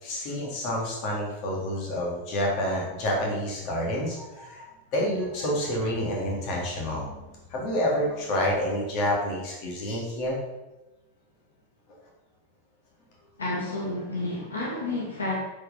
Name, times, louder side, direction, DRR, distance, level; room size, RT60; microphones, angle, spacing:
voice 1, 0.0-10.4 15.3-15.4, equal, 40° left, -2 dB, 3.0 m, -28 dB
voice 2, 13.4-15.3, left 2 dB, 70° left, -4 dB, 2.7 m, -30 dB
10.5 x 5.4 x 5.3 m, 1.1 s
figure-of-eight pair, 90°, 0 cm